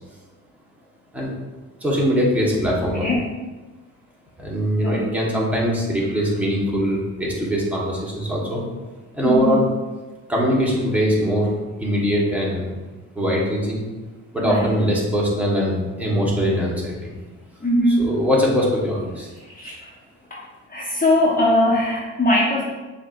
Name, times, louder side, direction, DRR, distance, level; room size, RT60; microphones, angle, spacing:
voice 1, 1.8-3.1 4.4-8.6 9.1-9.6 10.3-11.5 11.8-12.7 13.1-13.8 14.3-17.1 18.0-19.3, equal, 5° right, -5 dB, 1.4 m, -21 dB
voice 2, 9.2-9.7 14.4-14.7 17.6-18.1 19.4-19.9 20.3-20.4 20.7-22.6, left 1 dB, 30° left, -5 dB, 0.9 m, -20 dB
6.9 x 2.7 x 2.6 m, 1.2 s
cardioid pair, 90°, 30 cm